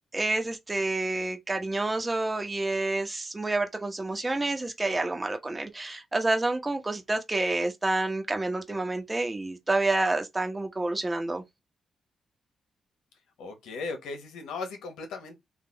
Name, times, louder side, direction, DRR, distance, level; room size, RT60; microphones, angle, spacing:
voice 1, 0.1-11.4, right 2 dB, 20° right, 1.1 m, -28 dB
voice 2, 13.4-15.4, left 4 dB, 90° left, 1.2 m, -37 dB
3.8 x 2.7 x 4.0 m
cardioid pair, 75°, 0 cm